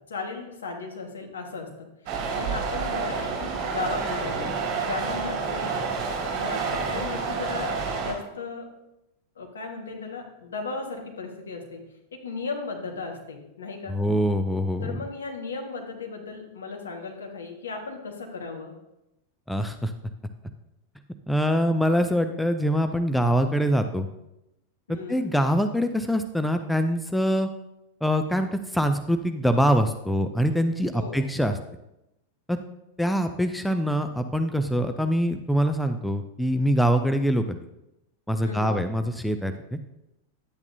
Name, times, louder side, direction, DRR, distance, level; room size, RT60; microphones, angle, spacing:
voice 1, 0.1-1.9 2.3-5.9 6.3-8.7 9.4-11.9 12.1-13.9 14.8-18.7 24.9-25.2 30.9-31.2 38.4-38.8, left 4 dB, 70° left, 2 dB, 1.5 m, -36 dB
sound 1, 2.1-8.1, right 5 dB, 40° right, 2.7 m, -29 dB
voice 2, 13.9-15.0 19.5-19.9 21.3-24.1 24.9-27.5 28.0-31.6 32.5-32.6 33.0-37.6 38.3-39.8, equal, 5° left, 8 dB, 0.5 m, -24 dB
10.5 x 8.2 x 2.7 m, 0.88 s
figure-of-eight pair, 90°, 0 cm